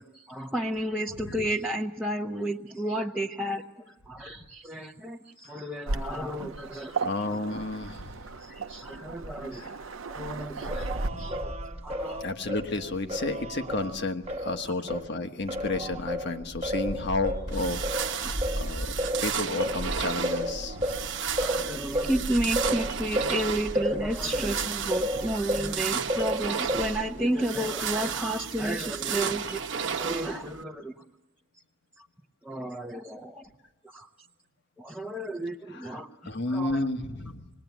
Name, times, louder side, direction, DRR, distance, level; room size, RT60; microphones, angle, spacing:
voice 1, 0.0-7.0 8.3-9.7 10.1-11.5 11.8-12.2 14.8-14.9 18.5-18.6 21.4-29.6 29.9-30.9 32.0-32.1 32.4-33.5 33.8-34.1 34.8-36.1 36.5-36.9, right 1 dB, 5° right, -1 dB, 0.8 m, -32 dB
Waves surf, 5.9-11.1, right 3 dB, 90° right, 0.8 m, -36 dB
voice 2, 7.0-8.1 9.5-9.7 11.0-11.5 12.2-18.9 19.2-21.0 35.7-36.0 36.2-37.5, left 2 dB, 60° left, 7 dB, 1.4 m, -32 dB
Singing, 10.7-15.1 15.5-25.8 26.1-27.1, equal, 30° right, 1.3 m, -32 dB
sound 1, 17.5-30.6, right 7 dB, 65° right, 1.0 m, -33 dB
26.0 x 20.0 x 9.3 m, 1.1 s
head